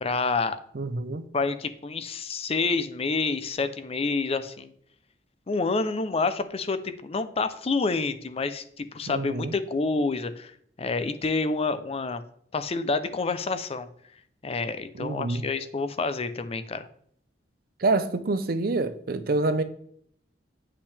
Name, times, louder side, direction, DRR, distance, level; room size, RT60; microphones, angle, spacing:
voice 1, 0.0-0.6 1.3-4.7 5.5-10.5 10.8-12.2 12.5-13.9 14.4-16.9, left 3 dB, 35° left, 0.5 m, -28 dB
voice 2, 0.7-1.3 9.1-9.5 15.0-15.5 17.8-19.6, right 3 dB, 55° right, 0.6 m, -27 dB
8.2 x 5.7 x 3.4 m
head